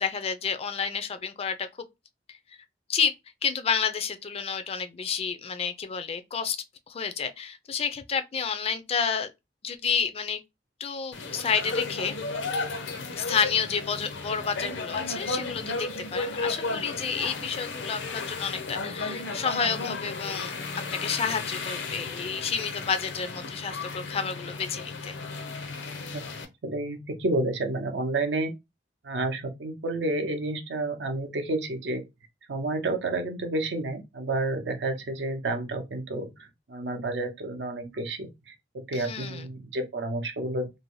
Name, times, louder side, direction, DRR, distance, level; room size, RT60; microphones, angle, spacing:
voice 1, 0.0-1.9 2.9-3.1 3.4-9.3 9.6-10.4 10.8-12.2 13.1-20.5 20.9-25.1 38.9-39.4, left 6 dB, 35° left, 0.3 m, -30 dB
sound 1, 11.1-26.4, left 3 dB, 80° left, 0.6 m, -34 dB
voice 2, 26.6-28.5 29.0-32.0 32.5-40.8, right 2 dB, 75° right, 0.6 m, -30 dB
2.6 x 2.0 x 3.0 m
head